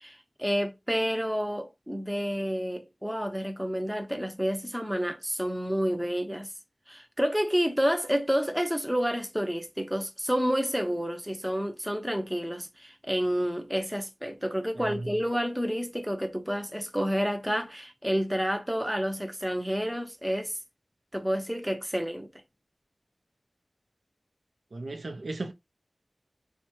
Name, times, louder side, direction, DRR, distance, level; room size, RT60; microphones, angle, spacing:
voice 1, 0.0-6.5 6.9-20.6 21.1-22.3, equal, 5° right, 0.7 m, -29 dB
voice 2, 14.8-15.1 24.7-25.5, right 2 dB, 80° right, 0.5 m, -36 dB
2.7 x 2.1 x 3.0 m
wide cardioid pair, 65°, 0 cm